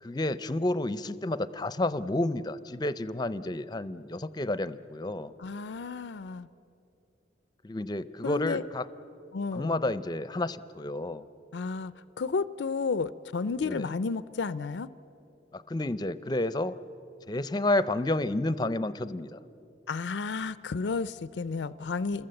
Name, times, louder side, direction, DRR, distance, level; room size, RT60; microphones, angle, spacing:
voice 1, 0.0-5.3 7.6-8.9 9.5-11.3 13.6-13.9 15.5-16.8 17.3-19.4, left 2 dB, 25° left, 14 dB, 0.6 m, -30 dB
voice 2, 5.4-6.5 8.2-8.6 9.3-9.8 11.5-14.9 19.9-22.3, left 4 dB, 75° left, 15 dB, 0.5 m, -32 dB
28.0 x 21.5 x 7.7 m, 2.9 s
head